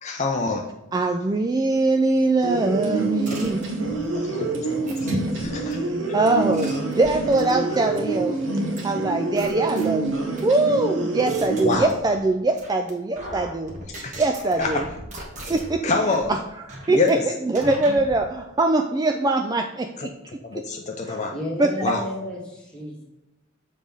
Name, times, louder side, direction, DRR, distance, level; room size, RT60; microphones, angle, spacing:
voice 1, 0.0-0.6 4.1-4.5 5.0-5.8 11.6-11.9 14.0-14.1 14.6-14.8 15.8-16.3 16.9-17.2 20.0-20.1 20.4-21.3 21.8-22.0, left 3 dB, 35° left, 2 dB, 0.6 m, -25 dB
voice 2, 0.9-4.0 5.7-5.9 6.1-8.4 8.8-13.7 14.2-14.9 15.5-15.8 16.3-16.4 16.9-20.1 20.5-20.6 21.1-21.2 21.6-21.7, right 2 dB, 20° right, 5 dB, 0.3 m, -22 dB
sound 1, 2.4-11.7, right 3 dB, 70° right, 1.3 m, -27 dB
sound 2, 3.3-4.0 4.9-5.7 6.3-8.1 8.8-8.9 9.4-10.4 10.9-12.3 12.6-12.9 13.2-15.8 16.1-16.3 16.7-17.1 17.5-18.2, right 1 dB, 40° right, 1.3 m, -38 dB
voice 3, 21.3-23.0, left 1 dB, 5° left, -4 dB, 1.8 m, -32 dB
7.3 x 3.4 x 5.3 m, 0.93 s
head